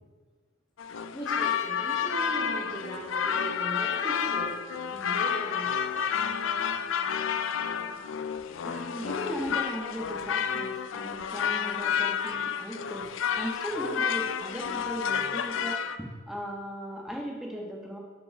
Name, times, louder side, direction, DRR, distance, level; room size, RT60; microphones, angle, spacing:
sound 1, 0.8-16.0, left 7 dB, 70° left, 0.4 m, -30 dB
voice 1, 1.1-4.6 4.9-6.0, equal, 20° left, -6 dB, 1.0 m, -38 dB
voice 2, 8.6-13.1 13.3-18.0, equal, ahead, -2 dB, 1.1 m, -37 dB
5.6 x 5.4 x 5.8 m, 1.5 s
head